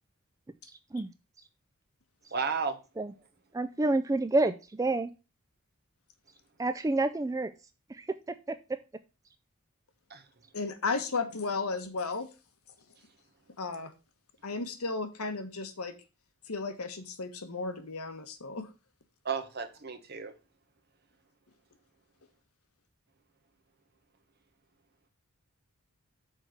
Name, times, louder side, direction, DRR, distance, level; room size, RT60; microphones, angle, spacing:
voice 1, 2.3-2.8 10.1-10.2 19.2-20.3, right 5 dB, 45° right, 1.1 m, -33 dB
voice 2, 3.5-5.1 6.6-7.5 7.9-8.1 8.5-8.6, right 2 dB, 15° right, 0.3 m, -28 dB
voice 3, 10.5-12.3 13.6-13.9 14.4-15.9 16.5-18.7, left 4 dB, 80° left, 1.2 m, -34 dB
6.4 x 4.6 x 6.3 m
head